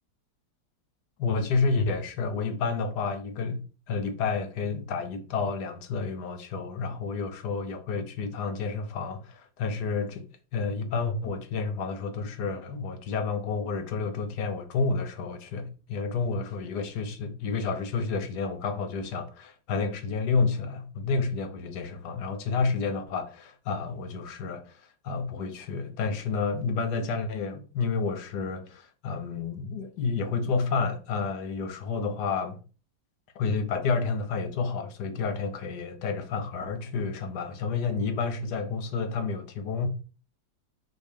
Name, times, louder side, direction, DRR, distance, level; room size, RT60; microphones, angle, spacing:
voice 1, 1.2-10.3 10.5-32.6 33.3-39.9, left 4 dB, 75° left, 1.5 m, -30 dB
6.4 x 3.0 x 5.1 m
omnidirectional pair, 1.8 m